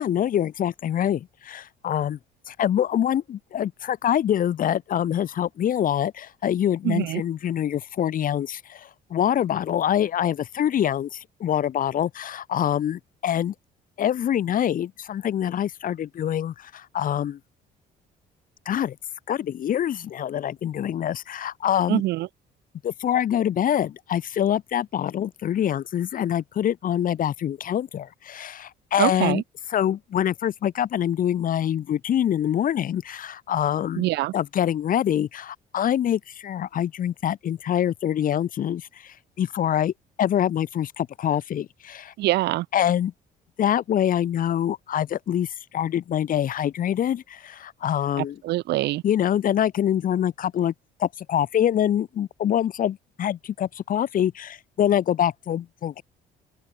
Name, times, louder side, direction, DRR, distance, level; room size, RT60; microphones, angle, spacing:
voice 1, 0.0-2.2 2.5-13.5 14.0-17.4 18.7-19.0 19.3-22.0 22.8-29.4 29.7-42.1 42.7-43.1 43.6-48.4 49.0-50.7 51.0-56.0, left 10 dB, 55° left, 4.0 m, -25 dB
voice 2, 6.8-7.2 21.9-22.3 29.0-29.4 34.0-34.3 42.2-42.6 48.4-49.0, right 17 dB, 80° right, 6.7 m, -24 dB
open air
cardioid pair, 110°, 17 cm